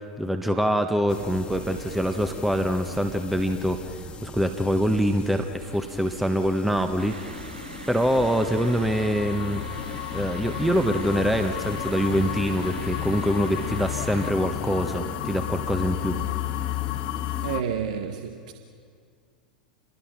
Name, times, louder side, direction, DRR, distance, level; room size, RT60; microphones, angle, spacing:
voice 1, 0.0-7.5 7.9-9.6 10.1-16.2, equal, 5° right, 1.3 m, -25 dB
sound 1, 1.1-17.6, left 4 dB, 20° left, 1.9 m, -40 dB
sound 2, 7.0-14.3, right 4 dB, 75° right, 1.2 m, -43 dB
sound 3, 8.2-17.6, left 16 dB, 45° left, 0.9 m, -32 dB
voice 2, 17.4-18.5, right 7 dB, 55° right, 1.4 m, -30 dB
28.0 x 21.5 x 5.9 m
figure-of-eight pair, 90°, 5 cm